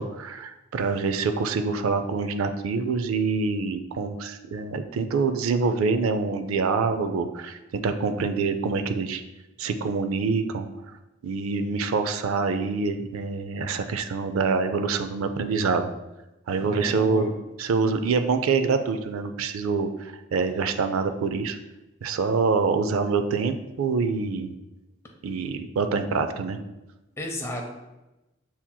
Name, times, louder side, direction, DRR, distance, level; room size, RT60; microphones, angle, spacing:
voice 1, 0.0-9.2 9.6-10.7 11.2-15.9 16.5-17.3 17.6-19.9 20.3-21.6 22.0-24.5 25.2-26.6, right 4 dB, 80° right, 8 dB, 0.4 m, -25 dB
voice 2, 16.6-17.3 27.2-27.6, left 1 dB, 15° left, 1 dB, 0.6 m, -33 dB
7.3 x 2.8 x 2.2 m, 0.99 s
head